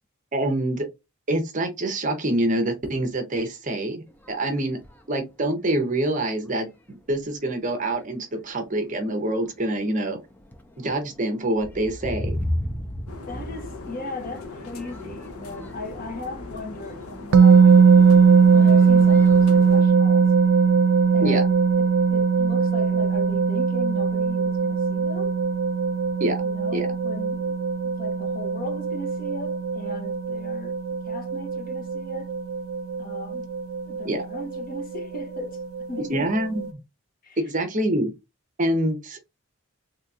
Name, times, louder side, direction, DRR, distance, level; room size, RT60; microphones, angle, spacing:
voice 1, 0.3-0.9 1.3-4.8 5.1-10.2 10.8-12.4 21.2-21.4 26.2-26.4 26.7-26.9 34.0-34.2 36.1-36.7 37.4-38.1 38.6-39.2, right 1 dB, 35° right, 0.7 m, -26 dB
sound 1, 4.1-5.1 5.8-5.9 6.4-6.7 7.0-7.6 8.3-8.5 9.0-19.6, left 1 dB, 10° left, 0.3 m, -36 dB
sound 2, 13.1-19.8, left 3 dB, 90° left, 0.7 m, -39 dB
voice 2, 13.3-20.3 21.1-25.4 26.4-32.4 33.0-33.5 33.8-36.3 37.2-37.4, left 2 dB, 40° left, 0.9 m, -37 dB
sound 3, 17.3-36.7, right 5 dB, 70° right, 0.3 m, -20 dB
3.3 x 2.8 x 2.4 m
head